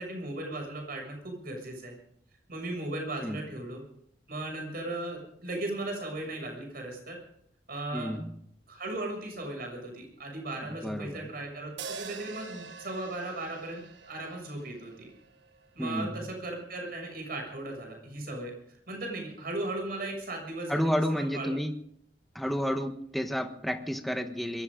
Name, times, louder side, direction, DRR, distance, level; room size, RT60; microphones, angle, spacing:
voice 1, 0.0-2.0 2.5-3.8 4.3-7.2 7.7-8.2 8.7-15.1 15.8-18.6 18.9-21.5, right 2 dB, 55° right, 2 dB, 7.0 m, -37 dB
voice 2, 7.9-8.3 10.6-11.3 15.8-16.1 20.7-21.7 22.3-24.6, equal, ahead, 6 dB, 1.2 m, -31 dB
sound 1, 11.8-16.1, right 5 dB, 80° right, 1.3 m, -45 dB
22.5 x 15.5 x 3.8 m, 0.69 s
head